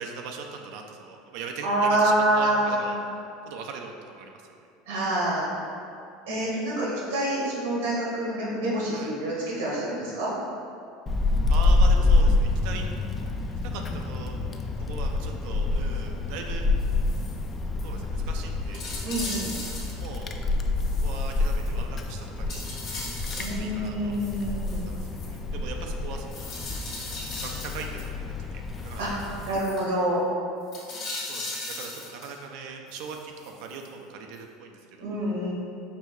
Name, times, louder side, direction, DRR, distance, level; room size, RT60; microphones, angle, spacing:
voice 1, 0.0-3.0 3.5-4.3 8.9-9.1 11.5-12.9 13.6-14.4 14.8-16.7 17.8-18.9 20.0-20.3 21.0-22.6 23.5-24.1 24.6-26.5 27.4-28.2 28.5-29.3 31.3-35.1, right 5 dB, 70° right, 3 dB, 0.4 m, -40 dB
voice 2, 1.6-3.1 4.9-5.5 6.3-10.3 19.0-19.5 23.3-24.9 29.0-29.1 29.4-30.2 35.0-35.5, right 1 dB, 90° right, -6 dB, 1.5 m, -26 dB
Wind, 11.1-29.6, left 2 dB, 30° left, 0.3 m, -27 dB
sound 1, 16.8-17.5 17.8-17.9 18.3-18.4 18.7-20.1 20.8-22.1 22.5-23.6 24.1-25.4 26.3-28.0 28.7-29.8 30.7-32.4 32.9-33.9 34.3-34.4, left 2 dB, 55° left, 1.4 m, -38 dB
5.2 x 2.6 x 3.1 m, 2.5 s
hypercardioid pair, 95°, 0 cm